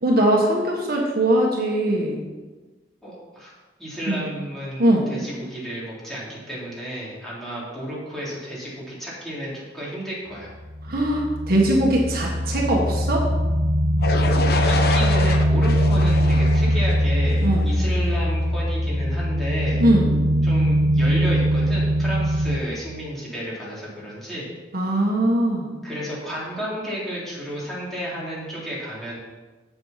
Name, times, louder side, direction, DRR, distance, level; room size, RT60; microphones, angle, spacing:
voice 1, 0.0-2.2 4.1-4.2 4.8-5.1 10.9-13.3 17.4-17.7 19.8-20.2 24.7-25.7, right 1 dB, 60° right, -1 dB, 1.5 m, -21 dB
voice 2, 3.0-3.5 3.8-10.5 14.0-14.3 14.7-19.8 20.4-24.5 25.8-29.2, equal, ahead, -8 dB, 3.6 m, -32 dB
sound 1, 10.5-22.6, equal, 40° right, 1.1 m, -21 dB
sound 2, 14.0-17.9, left 2 dB, 60° left, 0.9 m, -27 dB
8.0 x 7.7 x 5.9 m, 1.2 s
head